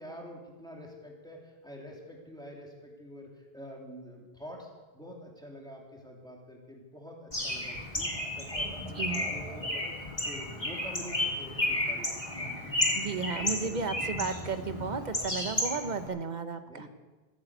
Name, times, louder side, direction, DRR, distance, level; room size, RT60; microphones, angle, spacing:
voice 1, 0.0-4.7 4.9-9.9 10.3-12.5 13.3-14.0 16.7-16.9, equal, 5° left, -2 dB, 3.3 m, -46 dB
Bird, 7.3-16.1, left 1 dB, 40° left, 3.6 m, -33 dB
voice 2, 8.6-9.3 12.9-16.9, right 4 dB, 45° right, 8 dB, 1.2 m, -34 dB
15.0 x 10.5 x 8.3 m, 1.2 s
omnidirectional pair, 1.1 m